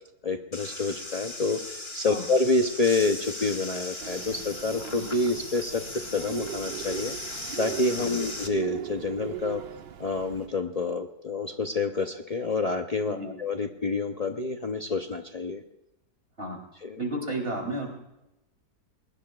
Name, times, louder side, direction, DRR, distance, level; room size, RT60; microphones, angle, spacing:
voice 1, 0.2-9.6 10.0-15.6 16.8-17.0, left 3 dB, 80° left, 4 dB, 0.3 m, -28 dB
sound 1, 0.5-8.5, left 2 dB, 20° left, 1.1 m, -38 dB
sound 2, 4.0-10.5, right 11 dB, 90° right, 1.6 m, -39 dB
voice 2, 17.0-17.9, right 1 dB, 35° right, 1 dB, 3.6 m, -32 dB
21.5 x 20.0 x 2.4 m, 0.91 s
omnidirectional pair, 1.8 m